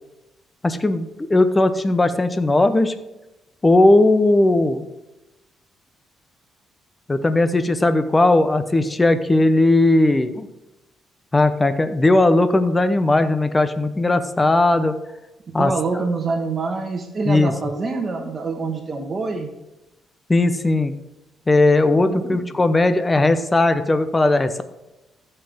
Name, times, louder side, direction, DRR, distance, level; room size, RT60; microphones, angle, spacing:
voice 1, 0.6-2.9 3.6-4.9 7.1-10.5 11.3-15.0 15.5-15.7 17.3-17.5 20.3-20.9 21.5-24.6, left 2 dB, 20° left, 10 dB, 0.9 m, -17 dB
voice 2, 15.6-19.5 21.9-22.4, right 3 dB, 40° right, 3 dB, 1.5 m, -25 dB
14.5 x 5.7 x 3.6 m, 0.96 s
cardioid pair, 90°, 0 cm